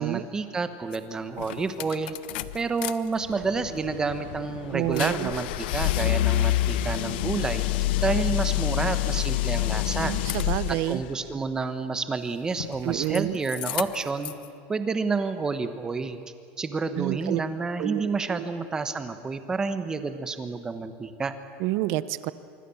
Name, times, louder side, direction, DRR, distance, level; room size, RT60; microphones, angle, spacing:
voice 1, 0.0-2.2 2.5-7.7 8.0-10.1 10.7-14.3 14.7-16.2 16.6-21.3, right 4 dB, 15° right, 10 dB, 1.1 m, -29 dB
sound 1, 0.9-1.0 1.4-2.9 3.3-11.0 12.5-13.2 13.5-14.4, left 15 dB, 75° left, 0.8 m, -28 dB
voice 2, 4.7-5.4 10.0-11.0 12.8-13.4 17.0-17.4 17.8-18.0 18.3-18.5 21.6-22.3, right 16 dB, 50° right, 15 dB, 0.8 m, -28 dB
25.5 x 24.0 x 7.1 m, 2.4 s
supercardioid pair, 170°, 5 cm